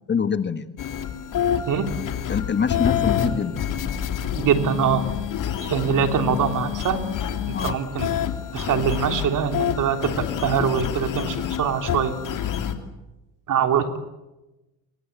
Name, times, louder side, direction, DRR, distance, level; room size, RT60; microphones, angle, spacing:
voice 1, 0.1-0.7 2.3-3.8 7.5-7.8, left 6 dB, 25° left, 11 dB, 1.5 m, -25 dB
sound 1, 0.8-12.7, left 9 dB, 50° left, 3.1 m, -27 dB
voice 2, 4.4-5.1 5.6-7.0 7.5-8.1 8.5-12.2 13.5-14.0, right 7 dB, 50° right, 7 dB, 3.5 m, -23 dB
29.5 x 23.5 x 8.3 m, 1.0 s
supercardioid pair, 100°, 41 cm